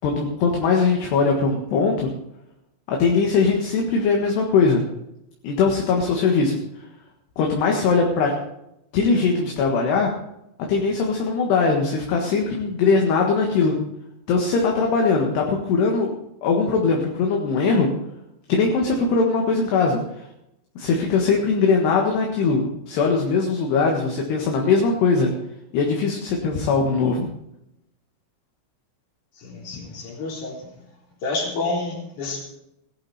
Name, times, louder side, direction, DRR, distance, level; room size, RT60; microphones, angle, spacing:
voice 1, 0.0-2.1 2.9-4.8 5.4-6.6 7.4-8.3 8.9-10.1 10.7-13.8 14.3-16.1 16.4-17.9 18.5-20.3 20.8-25.3 25.7-27.3 29.7-29.9, left 4 dB, 65° left, 1 dB, 3.4 m, -20 dB
voice 2, 29.4-30.7 31.2-32.4, left 3 dB, 40° left, -1 dB, 4.8 m, -29 dB
17.5 x 12.0 x 4.2 m, 0.84 s
omnidirectional pair, 5.7 m